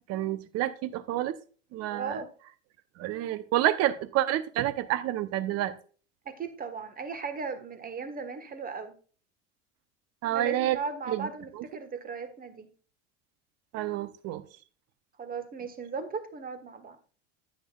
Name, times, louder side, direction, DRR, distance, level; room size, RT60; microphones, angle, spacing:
voice 1, 0.1-1.3 1.7-2.2 3.0-5.7 10.2-10.8 11.1-11.3 11.5-11.6 13.7-14.4, right 13 dB, 40° right, 15 dB, 0.9 m, -29 dB
voice 2, 1.9-2.3 6.2-8.9 10.3-12.7 15.2-17.0, right 5 dB, 25° right, 10 dB, 1.5 m, -37 dB
10.0 x 9.6 x 2.4 m, 0.39 s
figure-of-eight pair, 80°, 37 cm